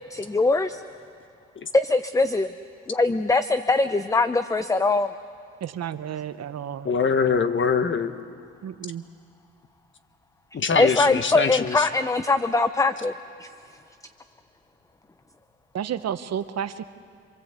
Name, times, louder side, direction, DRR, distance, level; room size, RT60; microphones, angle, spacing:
voice 1, 0.1-0.8 1.7-2.5 2.9-5.1 10.8-13.1 13.4-13.5, left 3 dB, 10° left, 11 dB, 0.6 m, -22 dB
voice 2, 5.6-6.9 8.6-9.0 15.7-16.9, right 9 dB, 55° right, 12 dB, 1.0 m, -31 dB
voice 3, 6.8-8.1 10.5-11.9, left 5 dB, 40° left, 9 dB, 1.5 m, -23 dB
27.0 x 23.0 x 8.2 m, 2.2 s
cardioid pair, 90°, 30 cm